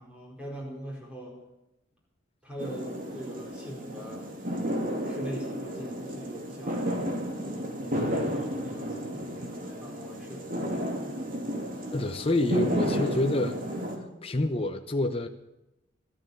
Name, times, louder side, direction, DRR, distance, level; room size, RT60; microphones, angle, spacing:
voice 1, 0.0-1.4 2.4-4.3 5.0-6.9 7.4-10.7, equal, 5° right, -2 dB, 4.7 m, -42 dB
sound 1, 2.6-14.0, equal, 45° right, 2.7 m, -32 dB
voice 2, 11.9-13.6 14.2-15.3, left 1 dB, 30° left, 6 dB, 0.9 m, -27 dB
13.5 x 13.0 x 7.1 m, 0.92 s
head